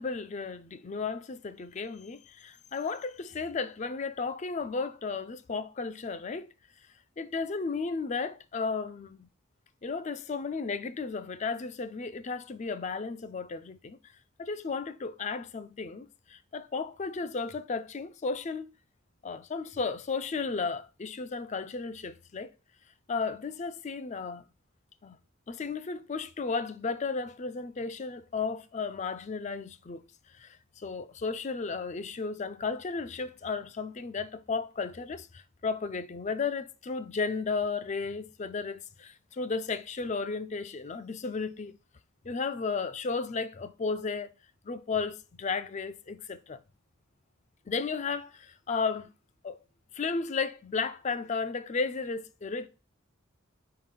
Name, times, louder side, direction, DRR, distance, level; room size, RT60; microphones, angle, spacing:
voice 1, 0.0-6.5 7.2-9.3 9.8-14.0 14.4-18.7 19.2-22.5 23.1-24.4 25.0-25.2 25.5-30.0 30.3-41.8 42.2-44.3 44.6-46.6 47.7-49.1 49.4-49.6 49.9-52.7, left 4 dB, 35° left, 0.4 m, -34 dB
5.1 x 3.8 x 5.6 m
head